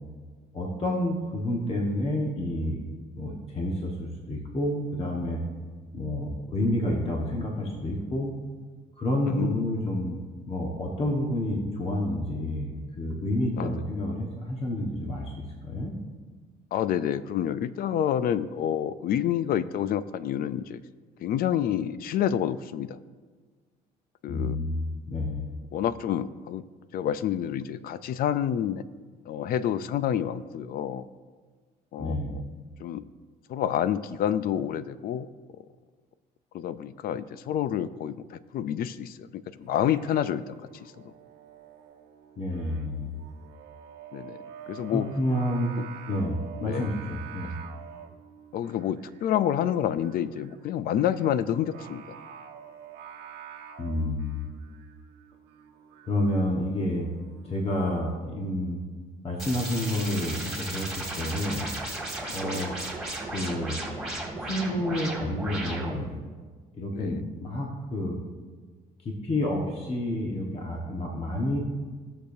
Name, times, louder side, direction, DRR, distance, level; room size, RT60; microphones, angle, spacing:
voice 1, 0.5-2.8 3.2-5.4 5.9-8.3 9.0-10.2 10.5-15.9 24.3-25.5 32.0-32.4 42.4-43.2 44.9-45.7 46.1-47.5 53.8-54.4 56.0-57.1 57.4-58.8 59.2-61.7 62.3-62.8 63.3-63.8 64.4-66.1 66.7-68.2 69.0-71.6, left 1 dB, 35° left, -1 dB, 1.3 m, -29 dB
voice 2, 9.2-9.6 13.6-13.7 16.7-20.8 21.2-23.0 24.2-24.6 25.7-26.6 26.9-28.8 29.3-31.0 31.9-32.2 32.8-33.0 33.5-35.3 36.5-40.5 40.8-41.1 44.1-44.4 44.7-45.1 45.8-45.9 46.6-46.9 48.5-52.0 62.3-62.7 66.9-67.2, left 10 dB, 60° left, 15 dB, 0.5 m, -28 dB
Singing, 39.6-58.1, right 8 dB, 80° right, 1.2 m, -48 dB
sound 1, 59.4-66.1, right 1 dB, 5° right, 2.3 m, -35 dB
18.5 x 6.8 x 2.7 m, 1.5 s
cardioid pair, 110°, 17 cm